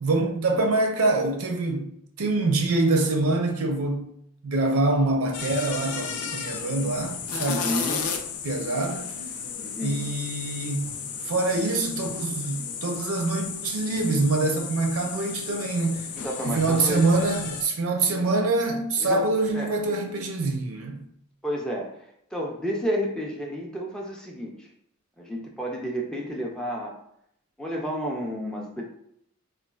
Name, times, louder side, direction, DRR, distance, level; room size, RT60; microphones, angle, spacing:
voice 1, 0.0-1.9 2.2-4.1 4.4-7.8 8.4-9.1 9.8-10.9 11.2-16.1 16.4-21.0, right 2 dB, 70° right, 0.5 m, -25 dB
sound 1, 5.3-17.6, left 6 dB, 80° left, 0.4 m, -34 dB
voice 2, 7.5-8.1 9.6-10.0 16.2-17.0 19.0-19.3 19.5-19.8 21.4-21.9 22.3-24.7 25.2-27.0 27.6-28.8, equal, 5° left, 0.3 m, -31 dB
3.9 x 2.3 x 2.3 m
head